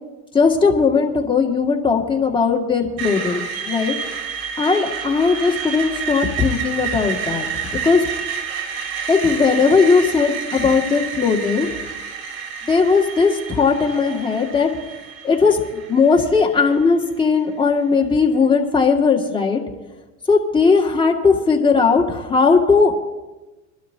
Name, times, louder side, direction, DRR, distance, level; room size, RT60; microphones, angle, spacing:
voice 1, 0.3-4.0 4.6-7.5 7.7-8.1 9.1-11.7 12.7-14.7 15.2-15.6 15.9-19.6 20.3-22.9, left 5 dB, 10° left, -1 dB, 1.9 m, -17 dB
Screech, 3.0-16.9, right 7 dB, 80° right, 3.6 m, -29 dB
24.5 x 12.0 x 2.7 m, 1.1 s
supercardioid pair, 125°, 41 cm